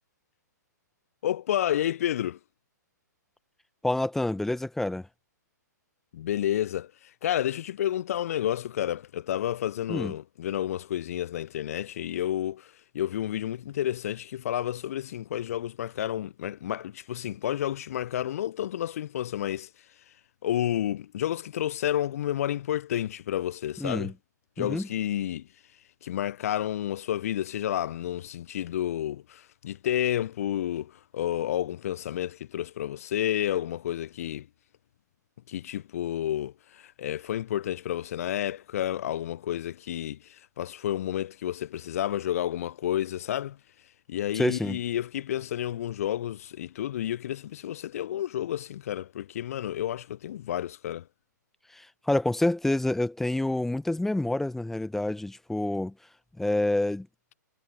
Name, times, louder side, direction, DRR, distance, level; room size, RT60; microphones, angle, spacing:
voice 1, 1.2-2.4 6.1-19.7 20.4-24.1 24.6-25.5 26.0-34.5 35.5-43.6 44.1-51.1, left 11 dB, 50° left, 0.4 m, -30 dB
voice 2, 3.8-5.1 9.9-10.1 23.8-24.1 24.6-24.9 44.3-44.8 51.7-55.9 56.4-57.1, left 1 dB, 5° left, 0.9 m, -27 dB
figure-of-eight pair, 120°, 10 cm